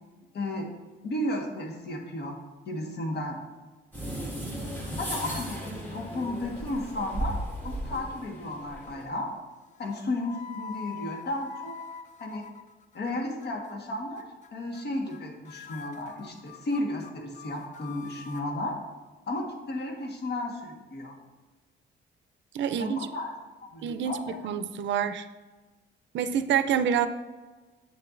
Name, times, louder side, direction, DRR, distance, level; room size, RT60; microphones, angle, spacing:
voice 1, 0.3-0.7 1.0-2.4 2.7-3.4 4.2-4.3 5.0-5.6 5.9-9.3 9.8-11.7 12.2-12.5 12.9-14.2 14.5-18.8 19.3-21.2 22.8-23.3 23.6-24.4, left 1 dB, 55° left, 1 dB, 1.4 m, -33 dB
sound 1, 3.9-9.1, right 1 dB, 10° left, 1.8 m, -35 dB
sound 2, 7.6-8.2 8.5-9.0 9.8-13.1 13.4-13.8 14.2-14.5 14.7-15.2 15.5-18.5, left 6 dB, 40° left, 0.5 m, -45 dB
voice 2, 22.5-23.1 23.8-25.3 26.1-27.1, right 8 dB, 70° right, 10 dB, 0.5 m, -27 dB
7.7 x 6.7 x 2.5 m, 1.3 s
cardioid pair, 90°, 20 cm